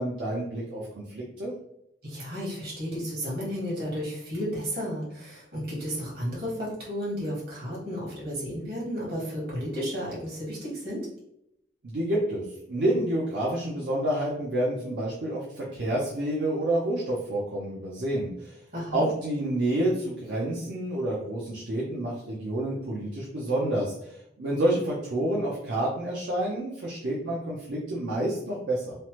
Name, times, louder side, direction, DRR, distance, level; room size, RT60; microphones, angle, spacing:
voice 1, 0.0-1.5 11.8-18.6 18.9-29.0, right 1 dB, 75° right, -5 dB, 0.6 m, -29 dB
voice 2, 2.0-11.0 18.7-19.1, equal, 60° right, -5 dB, 1.3 m, -33 dB
3.2 x 2.0 x 2.8 m, 0.79 s
head